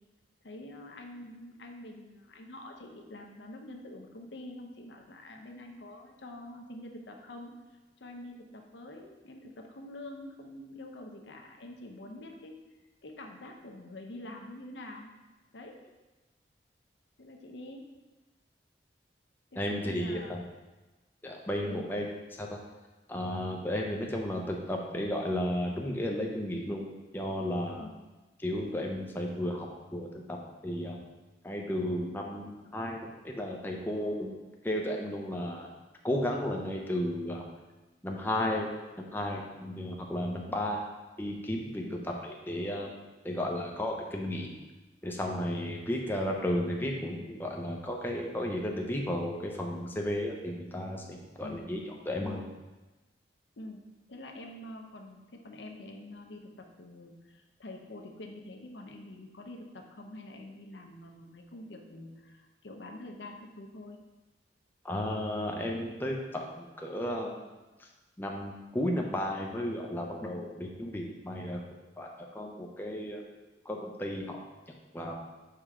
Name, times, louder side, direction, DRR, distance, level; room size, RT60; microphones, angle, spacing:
voice 1, 0.4-7.5 8.0-12.5 13.0-15.1 15.5-15.8 17.2-17.8 19.5-20.5 21.6-21.9 27.8-28.1 41.8-42.0 51.2-51.7 52.2-52.4 53.6-53.8 54.1-64.0, left 1 dB, 80° left, 2 dB, 0.7 m, -46 dB
voice 2, 19.6-20.4 21.2-22.1 22.4-22.6 23.1-26.9 27.1-27.8 28.4-31.0 31.4-34.4 34.6-35.7 36.0-37.4 38.0-38.7 39.0-40.8 41.2-42.9 43.2-44.5 45.0-52.4 64.8-67.4 68.2-71.6 72.0-73.2 73.7-74.4 74.9-75.2, left 1 dB, 10° left, 0 dB, 0.6 m, -33 dB
5.6 x 5.0 x 3.7 m, 1.1 s
head